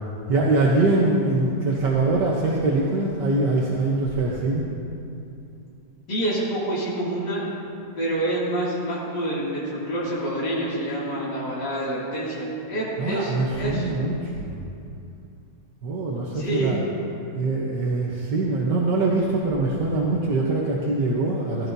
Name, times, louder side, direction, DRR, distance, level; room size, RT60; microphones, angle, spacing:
voice 1, 0.3-4.7 13.0-14.6 15.8-16.8 17.3-21.7, right 2 dB, 80° right, -3 dB, 1.7 m, -23 dB
voice 2, 6.1-7.5 8.0-13.9 16.3-16.7, right 1 dB, 75° left, -9 dB, 3.1 m, -27 dB
16.0 x 15.5 x 2.7 m, 2.6 s
omnidirectional pair, 1.9 m